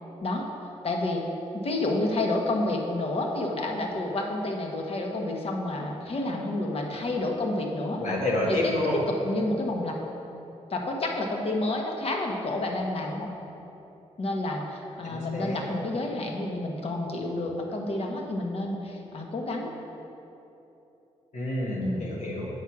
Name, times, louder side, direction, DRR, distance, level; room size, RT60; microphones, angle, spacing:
voice 1, 0.8-1.2 1.5-8.0 8.6-10.0 10.7-13.3 14.2-19.7 21.8-22.1, left 2 dB, 50° left, 1 dB, 1.1 m, -29 dB
voice 2, 8.0-9.0 15.0-15.6 21.3-22.5, left 1 dB, 75° left, -3 dB, 1.5 m, -28 dB
7.8 x 4.8 x 5.9 m, 3.0 s
cardioid pair, 80°, 13 cm